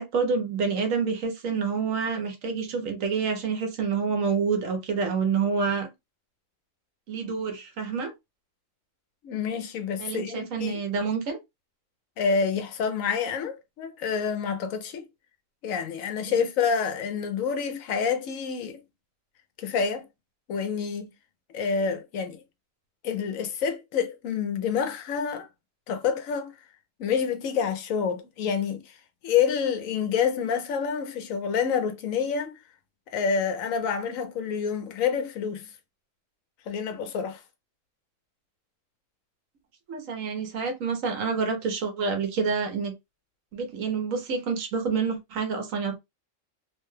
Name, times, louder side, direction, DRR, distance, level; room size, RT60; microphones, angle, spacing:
voice 1, 0.0-5.9 7.1-8.1 10.0-11.4 16.3-16.4 39.9-42.9 43.5-46.0, right 5 dB, 85° right, 1.2 m, -28 dB
voice 2, 9.2-10.8 12.2-15.1 15.6-18.8 19.6-20.1 20.5-21.1 21.5-22.4 23.0-25.5 25.9-26.5 27.0-28.8 29.2-32.5 33.1-35.7 36.7-37.4, left 6 dB, 85° left, 1.1 m, -28 dB
3.0 x 2.2 x 3.1 m
omnidirectional pair, 1.3 m